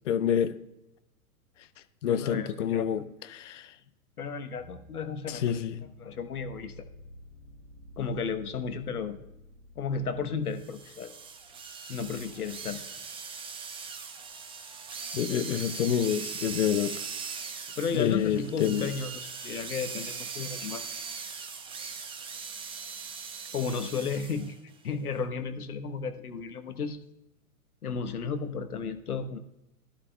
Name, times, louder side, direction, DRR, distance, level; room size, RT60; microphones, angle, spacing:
voice 1, 0.1-0.5 2.0-3.0 3.3-3.7 5.3-5.8 15.1-16.9 17.9-18.9, left 9 dB, 55° left, 13 dB, 0.8 m, -27 dB
voice 2, 2.0-2.9 4.2-5.6 6.0-6.8 8.0-9.2 9.7-11.1 11.9-12.8 17.8-20.8 23.5-24.6 24.8-27.0 27.8-29.4, left 5 dB, 80° left, 9 dB, 1.2 m, -33 dB
sound 1, 4.5-11.7, left 1 dB, 35° right, 1.4 m, -51 dB
sound 2, 10.6-24.5, right 5 dB, 10° right, 0.8 m, -40 dB
15.5 x 11.5 x 2.3 m, 0.87 s
hypercardioid pair, 120°, 45 cm